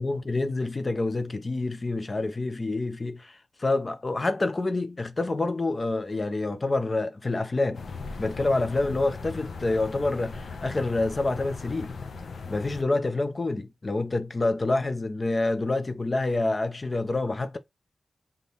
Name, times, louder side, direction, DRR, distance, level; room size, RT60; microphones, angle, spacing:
voice 1, 0.0-7.8 8.2-11.9 12.5-17.6, left 2 dB, 30° left, 0.6 m, -27 dB
sound 1, 7.7-12.8, left 4 dB, 75° left, 1.0 m, -38 dB
3.7 x 3.5 x 3.9 m
wide cardioid pair, 170°, 0 cm